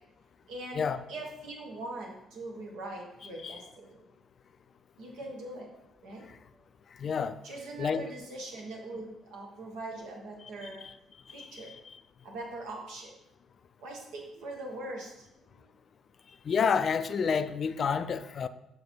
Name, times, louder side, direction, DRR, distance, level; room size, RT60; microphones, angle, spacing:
voice 1, 0.5-4.0 5.0-5.7 6.0-6.2 7.4-10.9 11.3-11.7 12.2-13.1 13.8-15.7, right 2 dB, 65° right, 1.4 m, -42 dB
voice 2, 7.0-7.4 7.8-8.1 10.8-10.9 11.3-11.9 16.5-18.5, left 6 dB, 50° left, 0.3 m, -29 dB
6.5 x 4.3 x 4.4 m
figure-of-eight pair, 45°, 0 cm